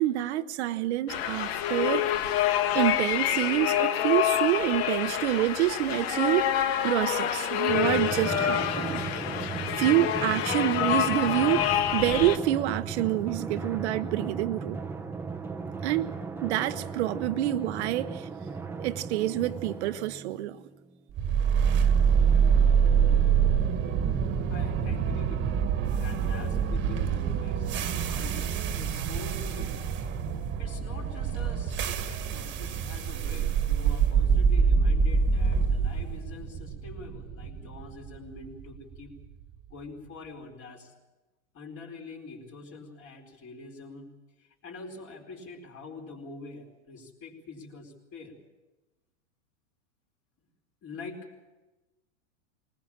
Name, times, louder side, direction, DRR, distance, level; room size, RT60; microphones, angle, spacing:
voice 1, 0.0-2.1 2.7-6.5 6.8-9.0 9.8-14.8 15.8-16.1 16.4-18.3 18.8-20.6, right 14 dB, 60° right, 0.9 m, -27 dB
sound 1, 1.1-12.4, left 10 dB, 55° left, 1.3 m, -27 dB
Drum, 7.7-20.8, right 5 dB, 5° right, 0.8 m, -36 dB
sound 2, 21.2-39.2, right 6 dB, 30° right, 1.6 m, -25 dB
voice 2, 24.5-25.7 26.0-29.9 30.6-39.1 39.7-40.9 41.5-44.1 44.4-48.3 50.8-51.3, left 3 dB, 35° left, 4.6 m, -45 dB
21.0 x 20.0 x 7.3 m
hypercardioid pair, 125°, 37 cm